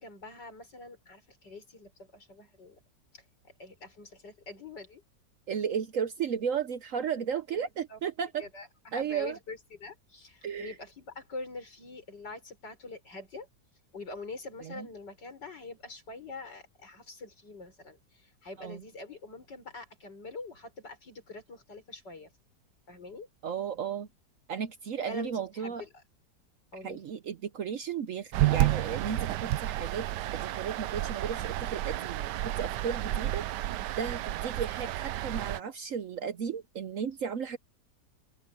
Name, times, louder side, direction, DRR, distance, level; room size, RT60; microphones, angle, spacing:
voice 1, 0.0-2.8 3.1-5.0 7.5-8.0 8.4-13.5 13.9-22.3 22.9-23.3 25.1-26.0 26.7-27.0, left 3 dB, 75° left, 5.8 m, -45 dB
voice 2, 5.5-8.4 8.9-9.4 10.4-10.7 14.6-14.9 18.6-18.8 23.4-24.1 24.5-25.8 26.8-30.1 30.3-33.4 34.0-37.6, right 7 dB, 60° right, 1.0 m, -34 dB
sound 1, 28.3-35.6, right 14 dB, 80° right, 1.2 m, -31 dB
open air
omnidirectional pair, 1.9 m